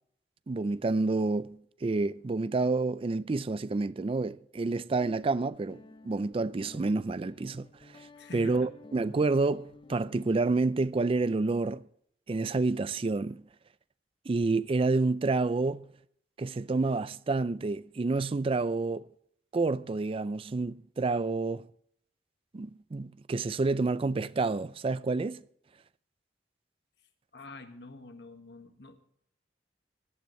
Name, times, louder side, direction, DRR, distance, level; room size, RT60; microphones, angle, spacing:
voice 1, 0.5-7.7 7.9-8.1 8.3-11.9 12.3-13.4 14.3-15.9 16.4-19.1 19.5-21.7 22.5-25.4, right 3 dB, 30° right, 0.4 m, -29 dB
Guitar, 5.0-10.6, left 2 dB, 30° left, 0.6 m, -53 dB
voice 2, 8.2-8.7 27.3-29.0, left 2 dB, 75° left, 1.6 m, -46 dB
17.0 x 12.0 x 3.1 m
head